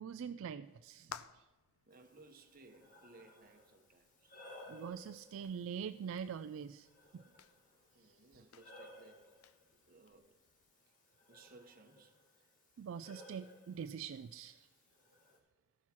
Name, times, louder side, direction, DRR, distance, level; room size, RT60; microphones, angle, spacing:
voice 1, 0.0-1.5 4.7-6.9 7.1-7.2 8.0-8.2 12.8-14.7, right 7 dB, 70° right, 11 dB, 0.3 m, -44 dB
sound 1, 0.6-10.7, left 7 dB, 85° left, 0.5 m, -59 dB
Breathing, 1.9-15.4, left 1 dB, 40° left, 1.6 m, -60 dB
voice 2, 1.9-4.4 7.9-9.3 9.7-10.4 11.3-12.2, right 3 dB, 40° right, 6 dB, 0.9 m, -61 dB
13.5 x 6.2 x 5.8 m, 1.1 s
head